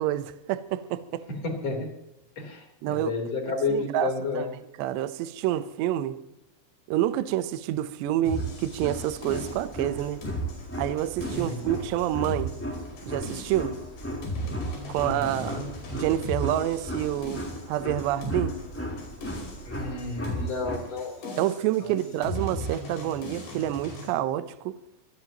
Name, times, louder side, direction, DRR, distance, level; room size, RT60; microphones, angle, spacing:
voice 1, 0.0-1.2 2.8-3.1 3.7-4.1 4.3-4.5 4.8-6.2 6.9-10.2 10.8-12.6 13.1-13.7 14.9-15.7 15.9-18.5 21.4-24.8, right 13 dB, 80° right, 2.9 m, -28 dB
voice 2, 1.4-1.9 2.4-4.4 11.3-11.7 15.1-15.7 19.6-21.4 21.8-21.9, left 3 dB, 35° left, 4.3 m, -31 dB
sound 1, 8.2-20.8, equal, 5° left, 3.2 m, -37 dB
sound 2, 8.3-24.1, equal, 65° left, 7.1 m, -36 dB
25.5 x 18.5 x 3.0 m
omnidirectional pair, 5.2 m